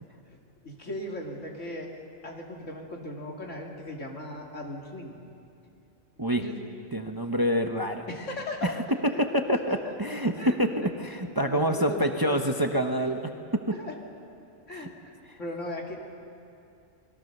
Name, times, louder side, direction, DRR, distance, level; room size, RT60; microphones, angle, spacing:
voice 1, 0.6-5.2 6.4-6.5 8.1-8.7 9.1-9.8 10.4-10.9 11.4-12.6 13.7-14.0 14.7-16.0, left 1 dB, 75° left, 0 dB, 3.0 m, -38 dB
voice 2, 6.9-8.1 8.6-8.8 9.2-13.6 14.7-14.9 15.3-15.4, equal, 20° right, 5 dB, 0.9 m, -27 dB
28.0 x 20.5 x 6.7 m, 2.6 s
omnidirectional pair, 1.3 m